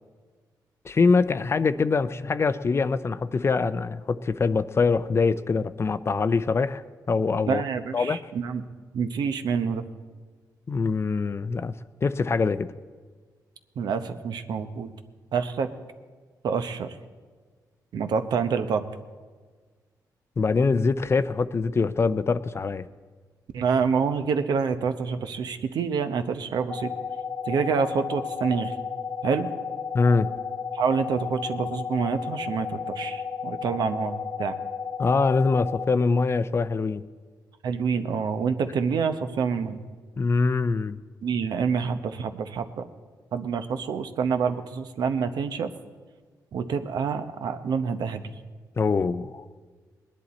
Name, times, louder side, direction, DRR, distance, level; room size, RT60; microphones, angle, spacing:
voice 1, 0.8-6.8 7.1-7.6 7.9-8.2 10.7-11.7 12.0-12.7 20.4-22.9 29.9-30.3 35.0-37.0 40.2-41.0 48.8-49.5, left 4 dB, 35° left, 14 dB, 0.5 m, -23 dB
voice 2, 7.5-8.6 8.9-9.8 13.8-14.9 15.3-15.7 16.4-16.9 17.9-18.8 23.5-26.9 27.5-28.8 29.2-29.5 30.7-34.6 37.6-39.8 41.2-42.9 43.3-45.7 46.5-48.2, right 6 dB, 70° right, 8 dB, 0.8 m, -27 dB
sound 1, 26.7-35.9, left 6 dB, 20° left, 0.9 m, -33 dB
19.5 x 10.5 x 4.2 m, 1.5 s
cardioid pair, 80°, 7 cm